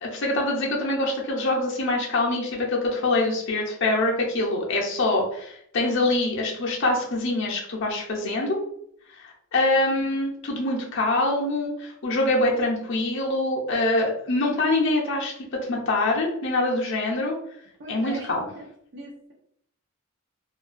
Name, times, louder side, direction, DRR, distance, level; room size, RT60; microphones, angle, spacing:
voice 1, 0.0-8.6 9.2-17.4 17.9-18.5, left 2 dB, 60° left, -1 dB, 0.5 m, -24 dB
voice 2, 17.8-18.6 18.9-19.3, right 1 dB, 60° right, -5 dB, 0.6 m, -39 dB
2.4 x 2.2 x 2.4 m, 0.70 s
head